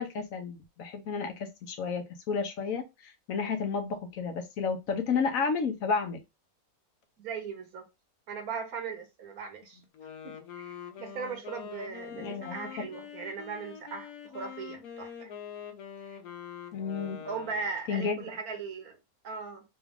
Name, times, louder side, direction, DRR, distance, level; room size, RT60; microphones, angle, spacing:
voice 1, 0.0-6.2 12.1-12.6 16.7-17.2 17.9-18.3, left 5 dB, 70° left, 1.2 m, -32 dB
voice 2, 7.2-7.8 8.3-9.8 10.2-15.3 16.1-16.2 17.2-19.0 19.2-19.6, right 5 dB, 80° right, 1.5 m, -38 dB
Wind instrument woodwind instrument, 9.8-17.8, left 8 dB, 85° left, 1.2 m, -44 dB
4.1 x 2.4 x 3.5 m
omnidirectional pair, 1.5 m